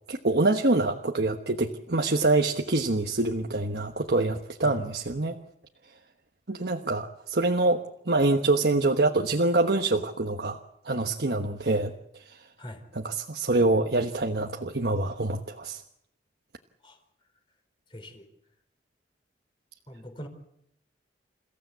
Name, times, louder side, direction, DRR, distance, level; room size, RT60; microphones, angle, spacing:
voice 1, 0.1-5.4 6.5-10.6 10.8-11.9 12.2-12.4 12.9-15.8, right 2 dB, 65° right, 3 dB, 1.2 m, -25 dB
voice 2, 17.9-18.2 19.9-20.3, equal, 30° left, 6 dB, 4.0 m, -42 dB
28.5 x 15.5 x 8.2 m, 0.77 s
head